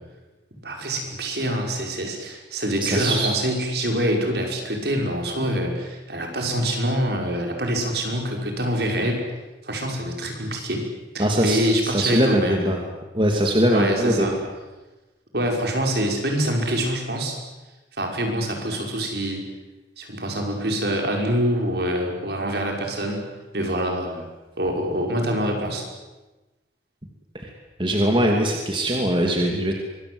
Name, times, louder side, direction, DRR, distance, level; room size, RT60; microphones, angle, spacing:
voice 1, 0.6-9.2 9.6-10.8 11.1-12.8 13.7-14.3 15.3-17.4 18.0-19.5 20.0-23.3 23.5-24.3 24.6-25.9, equal, 65° right, 2 dB, 5.9 m, -25 dB
voice 2, 2.8-3.3 11.2-12.8 13.1-14.4 27.3-27.5 27.8-29.8, right 1 dB, 25° right, 1 dB, 2.6 m, -21 dB
25.5 x 23.0 x 8.0 m, 1.1 s
head